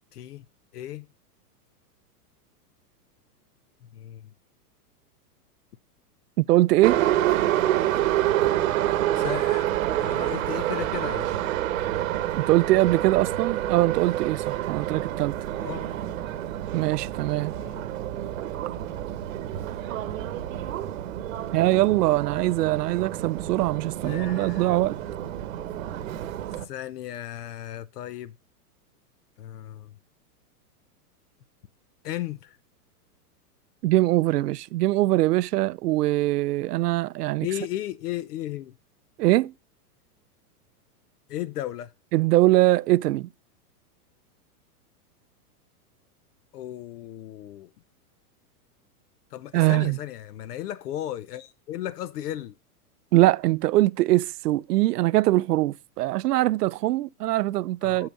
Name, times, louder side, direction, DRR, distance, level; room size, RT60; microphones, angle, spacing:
voice 1, 0.1-0.5 0.7-1.1 3.9-4.3 9.1-9.7 10.0-11.3 15.6-15.9 17.5-17.8 24.0-24.9 26.6-28.3 29.4-29.9 32.0-32.6 37.4-38.7 41.3-41.9 46.5-47.7 49.3-52.5 57.8-58.1, left 13 dB, 80° left, 0.7 m, -35 dB
voice 2, 6.4-7.0 12.4-15.3 16.7-17.5 21.5-25.0 33.8-37.5 39.2-39.5 42.1-43.3 49.5-50.0 53.1-58.1, right 17 dB, 80° right, 0.6 m, -22 dB
Subway metro underground, 6.8-26.6, right 13 dB, 60° right, 1.0 m, -28 dB
7.2 x 5.7 x 5.2 m
supercardioid pair, 170°, 47 cm